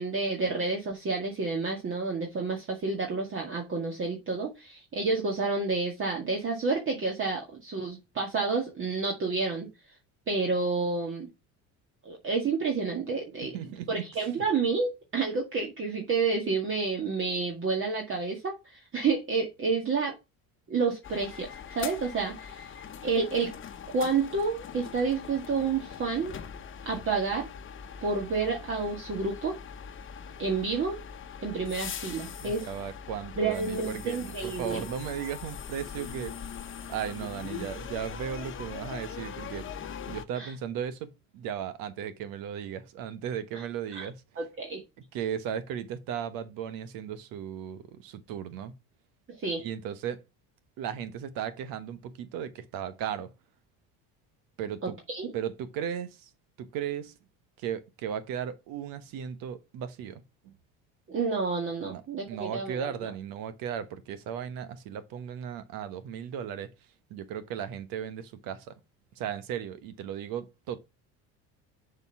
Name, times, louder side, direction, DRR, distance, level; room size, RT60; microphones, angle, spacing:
voice 1, 0.0-9.7 10.3-11.3 12.1-13.5 13.9-20.1 20.7-22.7 23.0-23.5 23.9-26.3 26.9-27.5 28.0-29.5 30.4-31.0 31.4-32.7 33.4-34.8 40.4-40.5 43.5-43.6 43.9-44.1 44.4-44.8 49.4-49.6 54.8-55.3 61.1-63.1, right 4 dB, 35° right, 2.0 m, -29 dB
voice 2, 13.4-14.3 32.4-36.3 36.9-39.8 40.1-44.2 45.0-48.8 49.6-50.2 50.8-53.3 54.6-55.0 55.3-56.3 56.6-57.1 57.6-60.5 61.8-66.7 67.1-68.8 69.1-70.8, right 8 dB, 70° right, 1.3 m, -36 dB
Train drives off, 21.0-40.3, left 7 dB, 35° left, 1.1 m, -41 dB
6.8 x 4.5 x 5.7 m
supercardioid pair, 105°, 35 cm